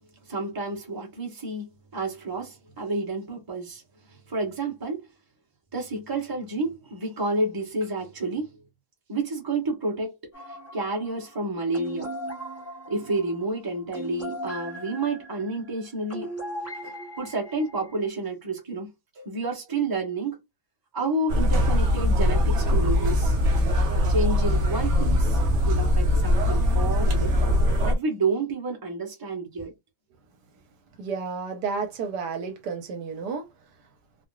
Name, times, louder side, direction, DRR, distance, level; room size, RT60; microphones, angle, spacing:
voice 1, 0.2-3.8 4.1-5.1 5.7-8.6 9.1-12.1 12.9-16.3 16.8-18.9 19.1-20.4 20.9-23.4 24.1-27.4 27.8-29.7, right 2 dB, 15° right, 0.9 m, -30 dB
sound 1, 10.3-18.1, right 1 dB, 15° left, 0.6 m, -39 dB
sound 2, 21.3-27.9, left 1 dB, 55° right, 0.9 m, -21 dB
voice 2, 31.0-33.5, right 5 dB, 85° right, 1.4 m, -31 dB
3.9 x 2.1 x 2.3 m
omnidirectional pair, 1.7 m